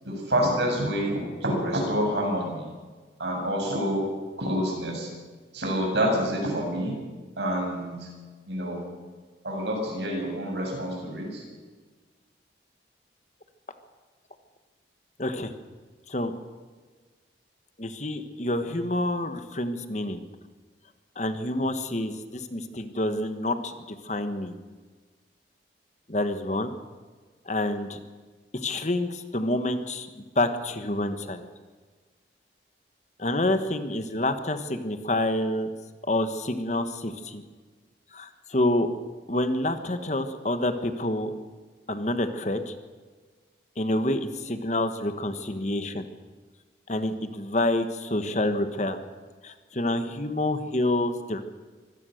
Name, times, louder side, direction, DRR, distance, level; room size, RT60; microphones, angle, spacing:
voice 1, 0.0-2.7 3.2-4.1 4.4-5.1 5.5-7.0 7.4-8.1 8.5-8.9 9.4-11.4, equal, 75° right, 1 dB, 7.5 m, -27 dB
voice 2, 15.2-15.5 16.1-16.3 17.8-20.2 21.1-24.5 26.1-26.7 27.4-28.0 28.5-30.1 30.3-31.4 33.2-35.7 36.1-37.4 38.1-38.9 39.3-41.3 41.9-42.7 43.8-46.0 46.9-49.0 49.4-51.4, left 1 dB, 40° left, 9 dB, 1.4 m, -28 dB
24.5 x 17.0 x 6.6 m, 1.4 s
head